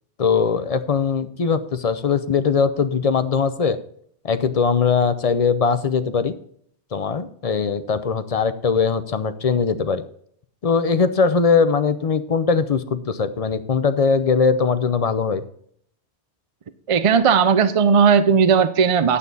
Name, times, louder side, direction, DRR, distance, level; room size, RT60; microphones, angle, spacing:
voice 1, 0.2-3.8 4.2-6.3 6.9-10.0 10.6-15.4, left 5 dB, 40° left, 12 dB, 0.6 m, -20 dB
voice 2, 16.9-19.2, right 6 dB, 45° right, 12 dB, 0.4 m, -16 dB
9.4 x 8.4 x 4.0 m, 0.65 s
omnidirectional pair, 1.1 m